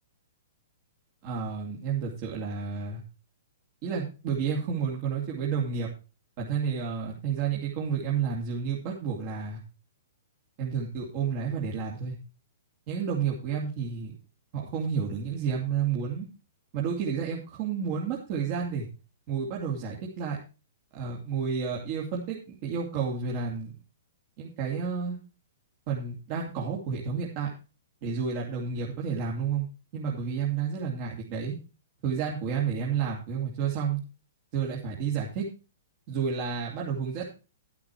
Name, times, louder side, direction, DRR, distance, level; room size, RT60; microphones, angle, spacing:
voice 1, 1.2-3.0 3.8-5.9 6.4-9.6 10.6-12.2 12.9-14.2 14.5-16.3 16.7-18.9 19.3-20.4 20.9-23.7 24.4-25.2 25.9-27.5 28.0-29.7 29.9-31.5 32.0-34.0 34.5-35.4 36.1-37.2, right 6 dB, 40° right, -3 dB, 2.9 m, -30 dB
12.0 x 8.4 x 4.6 m, 0.33 s
hypercardioid pair, 120°, 0 cm